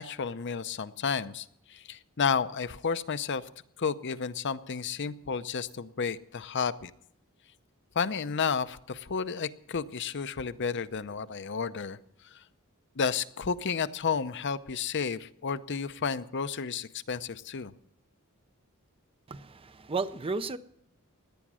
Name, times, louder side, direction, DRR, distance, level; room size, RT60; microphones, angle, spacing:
voice 1, 0.0-3.5 3.8-6.9 7.9-12.0 12.3-12.4 13.0-17.7, left 6 dB, 55° left, 12 dB, 0.7 m, -32 dB
voice 2, 19.3-20.6, right 4 dB, 25° right, 13 dB, 0.6 m, -33 dB
17.5 x 11.0 x 6.2 m, 0.71 s
head